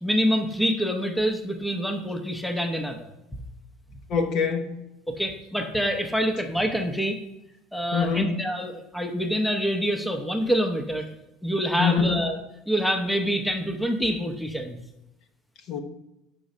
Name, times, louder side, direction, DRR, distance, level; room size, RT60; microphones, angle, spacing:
voice 1, 0.0-3.4 5.1-7.2 7.7-11.1 11.4-12.4 12.7-14.8, equal, 5° left, 4 dB, 0.7 m, -26 dB
voice 2, 4.1-4.8 7.9-8.3 11.8-12.2 15.7-15.8, left 5 dB, 55° left, 4 dB, 1.0 m, -24 dB
5.1 x 4.6 x 5.3 m, 0.91 s
supercardioid pair, 110°, 0 cm